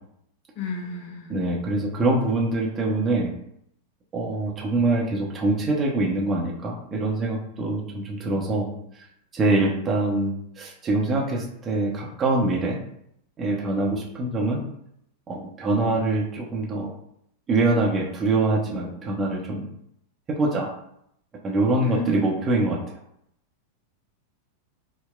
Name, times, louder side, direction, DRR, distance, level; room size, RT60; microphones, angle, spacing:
voice 1, 0.6-1.3 21.8-22.3, left 1 dB, 45° left, 3 dB, 0.6 m, -31 dB
voice 2, 1.3-3.3 4.1-8.7 9.0-9.1 9.3-12.8 13.4-14.6 15.3-16.9 17.5-19.7 20.3-20.7 21.4-22.8, right 2 dB, 25° right, -3 dB, 0.6 m, -24 dB
4.0 x 2.1 x 2.3 m, 0.73 s
figure-of-eight pair, 90°, 0 cm